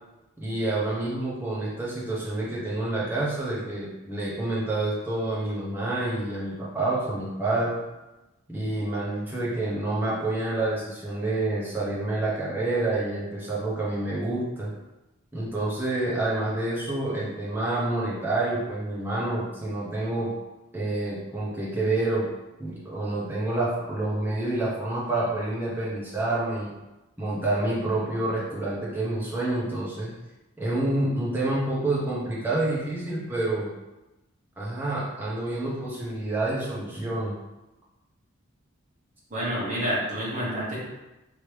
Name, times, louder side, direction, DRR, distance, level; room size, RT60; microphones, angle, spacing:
voice 1, 0.4-7.8 8.5-14.7 15.3-20.3 20.7-22.3 22.6-26.7 27.2-30.1 30.6-33.7 34.6-37.3, right 2 dB, 10° right, -7 dB, 0.8 m, -28 dB
voice 2, 39.3-40.8, equal, 35° right, -7 dB, 1.1 m, -28 dB
3.1 x 2.8 x 3.2 m, 1.0 s
head